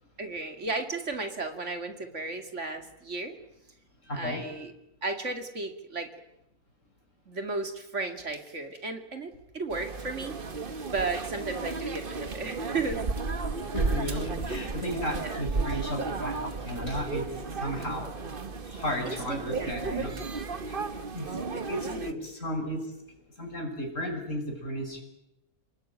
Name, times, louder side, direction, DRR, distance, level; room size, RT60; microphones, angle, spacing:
voice 1, 0.2-3.4 4.1-4.7 5.0-6.1 7.3-10.3 10.9-13.0 15.2-15.4 19.3-20.1 21.9-22.1, right 3 dB, 60° right, 7 dB, 2.7 m, -34 dB
voice 2, 4.0-4.6 10.9-11.0 13.7-18.2 18.6-20.1 20.4-20.9 21.1-25.0, equal, 65° left, 3 dB, 6.0 m, -34 dB
sound 1, 9.7-22.1, right 4 dB, 40° right, 1.5 m, -34 dB
29.0 x 20.0 x 9.0 m, 0.87 s
omnidirectional pair, 1.4 m